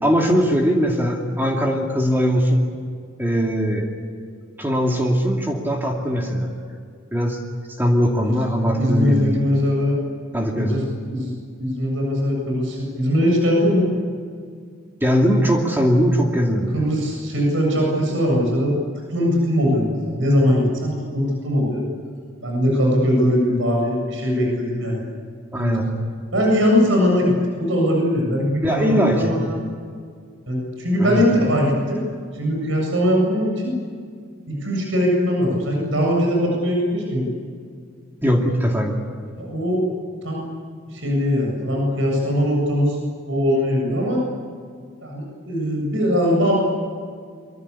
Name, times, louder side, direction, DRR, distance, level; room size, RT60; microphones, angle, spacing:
voice 1, 0.0-2.7 3.2-3.9 4.6-6.5 7.1-7.4 7.8-9.4 10.3-10.8 15.0-16.7 25.5-25.8 28.6-29.3 31.0-31.2 38.2-38.9, equal, 10° right, 0 dB, 2.5 m, -20 dB
voice 2, 8.7-10.0 10.6-10.8 11.1-11.3 11.6-13.9 16.7-18.7 19.1-21.8 22.4-25.0 25.6-25.7 26.3-29.6 30.5-32.0 32.3-33.7 34.5-37.3 39.4-39.9 40.2-40.4 40.9-43.0 43.3-44.2 45.0-46.6, equal, 70° right, -1 dB, 7.6 m, -20 dB
25.0 x 24.5 x 8.5 m, 2.1 s
head